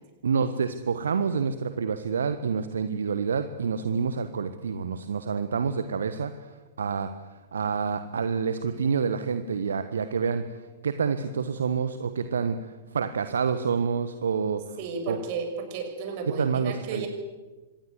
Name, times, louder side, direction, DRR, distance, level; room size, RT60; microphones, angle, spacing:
voice 1, 0.2-6.5 6.8-7.1 7.5-10.4 10.8-12.6 12.9-14.8 15.1-15.2 16.4-17.1, right 6 dB, 65° right, 10 dB, 1.3 m, -27 dB
voice 2, 14.8-17.1, right 5 dB, 45° right, 5 dB, 6.2 m, -33 dB
26.0 x 19.5 x 8.1 m, 1.2 s
figure-of-eight pair, 105°, 0 cm